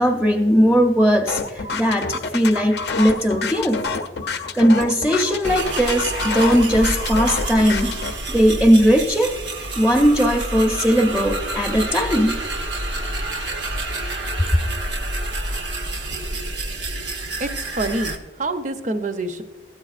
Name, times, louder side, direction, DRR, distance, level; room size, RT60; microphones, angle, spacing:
voice 1, 0.0-3.8 4.5-9.3 9.8-12.4, equal, ahead, 2 dB, 0.6 m, -18 dB
sound 1, 1.3-8.1, left 4 dB, 65° left, 0.5 m, -28 dB
sound 2, 5.4-18.2, right 2 dB, 85° right, 0.9 m, -28 dB
voice 2, 16.0-16.5 16.9-17.1 17.4-19.4, right 2 dB, 40° right, 9 dB, 0.6 m, -28 dB
13.5 x 8.8 x 2.4 m, 1.1 s
head